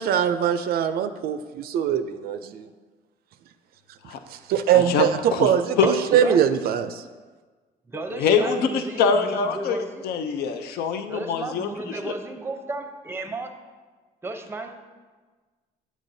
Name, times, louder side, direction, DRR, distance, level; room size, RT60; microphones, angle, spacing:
voice 1, 0.0-2.7 4.5-7.0, right 9 dB, 65° right, 10 dB, 0.4 m, -22 dB
voice 2, 4.7-5.9 8.1-12.1, left 5 dB, 70° left, 8 dB, 0.5 m, -24 dB
voice 3, 7.9-10.0 11.1-13.5 14.2-14.7, right 2 dB, 15° right, 6 dB, 0.6 m, -33 dB
8.1 x 7.3 x 2.7 m, 1.4 s
cardioid pair, 110°, 17 cm